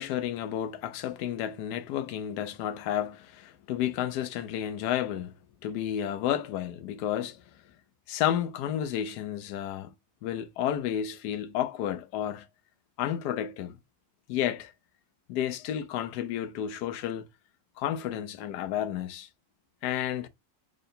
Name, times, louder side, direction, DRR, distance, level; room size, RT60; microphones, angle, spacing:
voice 1, 0.0-5.3 5.6-7.4 8.1-9.9 10.2-12.5 13.0-13.8 14.3-14.7 15.3-17.3 17.8-19.3 19.8-20.3, left 10 dB, 90° left, 1.1 m, -31 dB
3.7 x 2.2 x 3.9 m
omnidirectional pair, 1.7 m